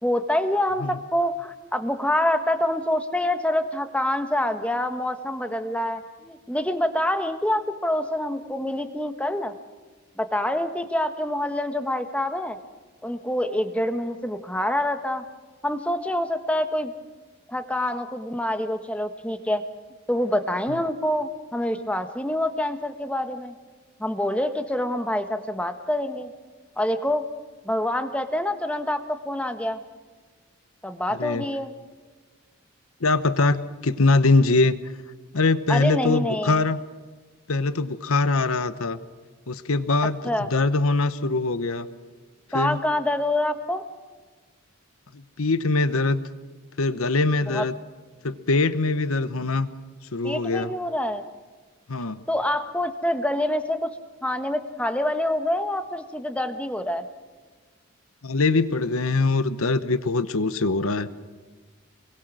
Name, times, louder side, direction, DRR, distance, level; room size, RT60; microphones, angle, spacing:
voice 1, 0.0-9.5 10.2-12.6 13.0-15.2 15.6-16.9 17.5-19.6 20.1-23.5 24.0-26.3 26.8-27.3 27.6-29.8 30.8-31.7 35.7-36.6 40.2-40.5 42.5-43.8 47.5-47.6 50.2-51.2 52.3-53.9 54.2-57.0, left 1 dB, 5° left, 8 dB, 1.3 m, -26 dB
voice 2, 31.1-31.5 33.0-34.9 35.3-36.8 37.5-39.0 39.5-41.9 42.5-42.8 45.1-46.2 46.8-47.7 48.2-49.7 50.1-50.7 51.9-52.2 58.2-61.1, left 3 dB, 80° left, 13 dB, 1.0 m, -23 dB
28.5 x 22.0 x 6.3 m, 1.3 s
head